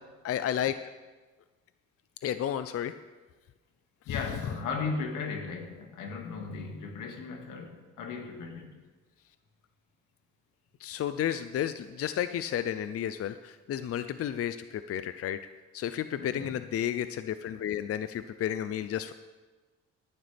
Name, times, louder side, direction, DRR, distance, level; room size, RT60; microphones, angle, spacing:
voice 1, 0.2-0.8 2.2-2.9 4.1-4.2 10.8-19.1, left 10 dB, 50° left, 11 dB, 0.5 m, -32 dB
voice 2, 4.1-8.7 16.2-16.5, left 4 dB, 85° left, 2 dB, 2.1 m, -36 dB
18.0 x 11.0 x 3.5 m, 1.3 s
cardioid pair, 90°, 30 cm